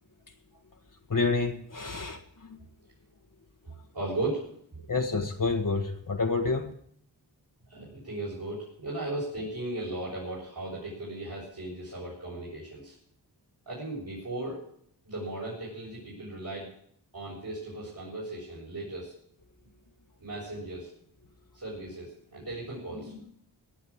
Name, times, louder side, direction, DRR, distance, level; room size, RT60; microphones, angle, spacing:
voice 1, 1.1-2.6 3.7-3.8 4.9-6.7, left 4 dB, 45° left, 4 dB, 1.5 m, -29 dB
voice 2, 3.9-4.4 7.7-12.9 13.7-14.6 15.1-16.7 17.1-19.1 20.2-20.9 21.5-23.3, right 2 dB, 55° right, -7 dB, 6.9 m, -36 dB
17.5 x 6.6 x 8.6 m, 0.65 s
cardioid pair, 50°, 43 cm